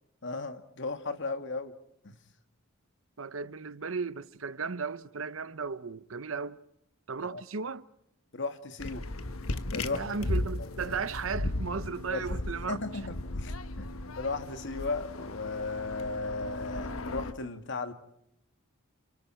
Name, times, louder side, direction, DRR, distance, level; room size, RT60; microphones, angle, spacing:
voice 1, 0.2-1.7 2.0-2.2 7.2-7.4 8.3-9.0 9.7-10.3 10.6-11.0 12.1-12.3 12.7-17.9, left 3 dB, 60° left, 2.0 m, -36 dB
voice 2, 3.2-6.6 7.1-7.8 9.9-12.8, right 5 dB, 70° right, 0.8 m, -35 dB
sound 1, 8.8-17.3, left 2 dB, 85° left, 1.3 m, -36 dB
30.0 x 28.0 x 4.4 m
head